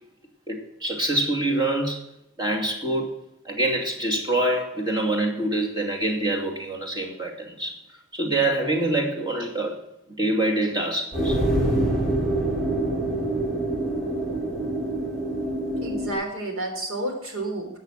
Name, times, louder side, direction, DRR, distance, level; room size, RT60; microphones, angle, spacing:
voice 1, 0.5-2.0 2.4-3.1 3.4-7.8 8.1-9.8 10.2-11.4, right 1 dB, 20° right, -1 dB, 2.5 m, -25 dB
sound 1, 11.1-16.1, right 1 dB, ahead, 6.3 m, -25 dB
voice 2, 15.8-17.8, right 1 dB, 90° right, 3 dB, 3.6 m, -30 dB
13.5 x 8.3 x 6.5 m, 0.84 s
head